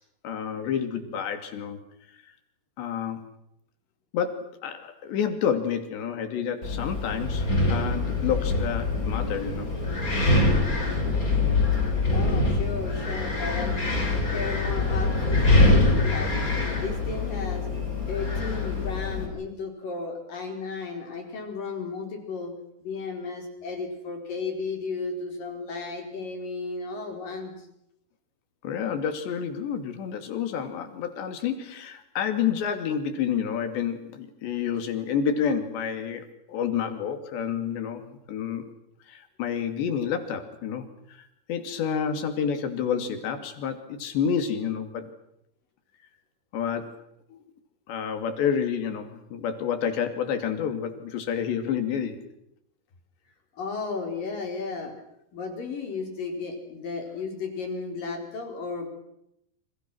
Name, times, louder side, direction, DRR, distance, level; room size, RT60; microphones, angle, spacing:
voice 1, 0.2-1.8 2.8-3.3 4.1-9.7 28.6-38.7 39.1-45.1 46.5-47.0 47.3-47.4 47.9-52.2, left 7 dB, 85° left, 8 dB, 4.9 m, -29 dB
Wind, 6.6-19.3, left 2 dB, 20° left, 6.0 m, -24 dB
voice 2, 12.1-13.8 14.3-16.4 16.8-17.7 18.1-22.5 22.8-27.7 53.6-55.0 55.3-58.9, left 4 dB, 55° left, 4 dB, 5.9 m, -34 dB
29.0 x 27.0 x 6.3 m, 0.79 s
omnidirectional pair, 4.9 m